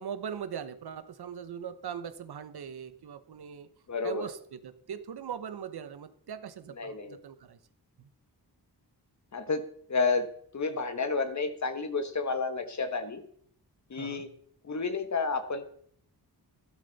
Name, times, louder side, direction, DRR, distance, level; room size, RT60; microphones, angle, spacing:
voice 1, 0.0-3.7 4.0-7.6 8.0-8.1 13.9-14.2, right 8 dB, 75° right, 12 dB, 1.0 m, -40 dB
voice 2, 3.9-4.3 6.8-7.2 9.3-9.6 9.9-10.3 10.5-13.2 13.9-14.3 14.6-15.7, left 4 dB, 45° left, 10 dB, 1.3 m, -30 dB
13.0 x 11.5 x 4.1 m, 0.63 s
wide cardioid pair, 125°, 39 cm